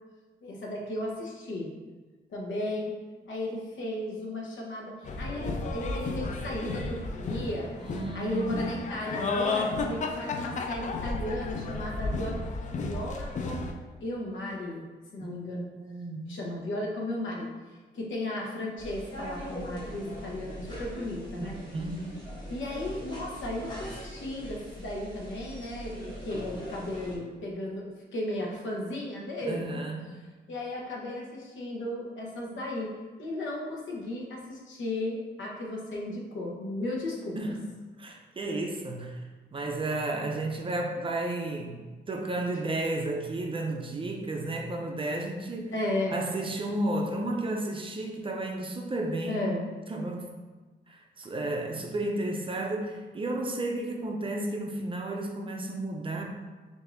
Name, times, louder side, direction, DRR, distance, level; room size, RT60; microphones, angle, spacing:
voice 1, 0.4-1.7 2.3-3.0 3.3-7.7 8.1-12.4 12.7-13.7 14.0-14.8 15.1-15.7 16.3-17.5 17.9-21.6 22.5-29.6 30.5-37.5 45.7-46.2 49.3-49.6, left 1 dB, 85° left, -2 dB, 0.9 m, -35 dB
sound 1, 5.0-13.7, left 3 dB, 40° left, 0.4 m, -33 dB
voice 2, 7.8-8.6 15.2-15.5 15.8-16.3 21.4-22.1 29.4-30.0 37.4-37.6 38.0-39.2 39.5-45.8 46.1-49.6 49.9-50.3 50.9-56.2, right 2 dB, 30° right, 2 dB, 0.4 m, -32 dB
sound 2, 18.8-27.2, equal, 25° left, 1.0 m, -41 dB
6.3 x 2.6 x 2.5 m, 1.3 s
wide cardioid pair, 155°, 19 cm